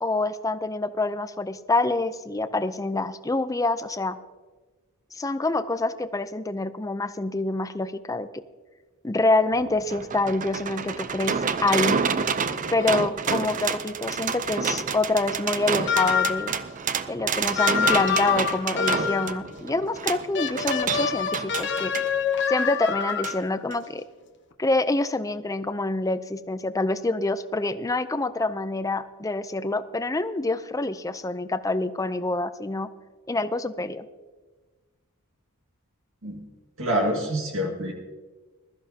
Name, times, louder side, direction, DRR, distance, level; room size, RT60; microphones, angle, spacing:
voice 1, 0.0-4.2 5.1-8.3 9.0-12.0 12.7-16.5 17.1-21.9 22.5-24.0 24.6-32.9 33.3-34.1, left 2 dB, 15° left, 11 dB, 0.5 m, -26 dB
sound 1, 9.5-22.1 23.2-23.4 23.7-23.8, right 6 dB, 35° right, 0.5 m, -28 dB
sound 2, 15.9-16.6 17.6-19.4 20.3-23.5, left 7 dB, 55° left, 1.0 m, -26 dB
voice 2, 36.8-37.9, equal, 65° right, 0 dB, 2.0 m, -26 dB
21.0 x 13.5 x 2.8 m, 1.3 s
head